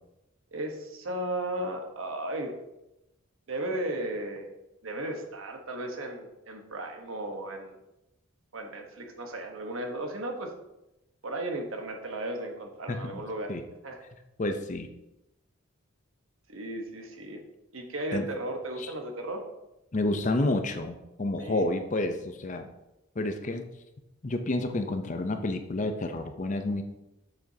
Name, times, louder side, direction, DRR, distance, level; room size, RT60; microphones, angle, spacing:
voice 1, 0.5-2.6 3.5-4.5 4.8-7.8 8.5-10.5 11.2-13.5 13.8-14.0 16.5-17.4 17.7-19.4 21.4-21.7, right 1 dB, 70° right, 4 dB, 1.1 m, -35 dB
voice 2, 12.9-13.2 13.5-13.6 14.4-14.9 18.1-18.2 18.8-18.9 19.9-22.7 23.2-23.7 24.2-26.8, left 2 dB, 35° left, 7 dB, 0.6 m, -29 dB
7.7 x 7.2 x 2.8 m, 0.94 s
head